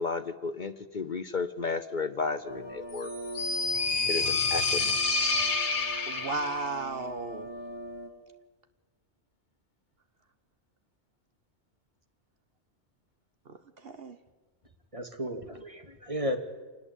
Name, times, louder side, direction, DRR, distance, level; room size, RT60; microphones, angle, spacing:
voice 1, 0.0-3.1 4.1-5.0, left 4 dB, 45° left, 11 dB, 1.0 m, -33 dB
sound 1, 2.4-8.1, right 1 dB, 20° left, 3.3 m, -42 dB
sound 2, 3.0-6.7, left 3 dB, 75° left, 1.8 m, -28 dB
voice 2, 6.1-7.5 13.5-14.2, right 3 dB, 60° right, 10 dB, 1.3 m, -35 dB
voice 3, 14.9-16.4, equal, 30° right, 5 dB, 2.3 m, -34 dB
26.0 x 20.5 x 8.4 m, 1.3 s
omnidirectional pair, 1.2 m